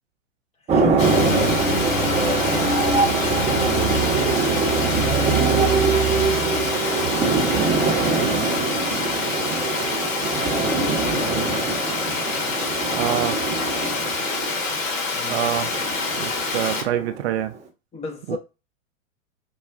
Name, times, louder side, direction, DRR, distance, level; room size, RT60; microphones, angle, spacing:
voice 1, 0.7-6.7 7.2-8.6 10.3-11.6 15.1-15.5 17.9-18.4, left 3 dB, 15° left, 0.7 m, -36 dB
sound 1, 0.7-17.5, right 4 dB, 15° right, 0.8 m, -23 dB
Water, 1.0-16.8, left 4 dB, 70° left, 1.3 m, -27 dB
voice 2, 12.9-13.4 15.3-15.7 16.2-17.5 18.3-18.4, right 11 dB, 50° right, 0.5 m, -25 dB
5.4 x 2.3 x 2.4 m
hypercardioid pair, 105°, 40 cm